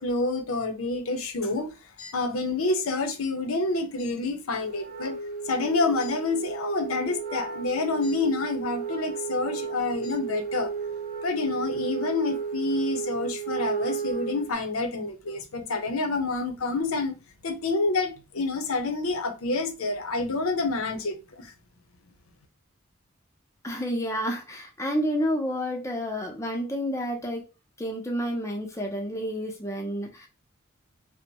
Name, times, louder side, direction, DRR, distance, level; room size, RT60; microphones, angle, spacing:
voice 1, 0.0-1.7 2.0-5.2 5.5-10.7 11.2-17.1 17.4-21.5, left 3 dB, 80° left, 0.6 m, -28 dB
Wind instrument woodwind instrument, 4.8-14.5, right 6 dB, 45° right, 0.5 m, -33 dB
voice 2, 23.6-27.5 27.8-30.3, equal, 15° left, 0.5 m, -30 dB
2.6 x 2.1 x 2.9 m
head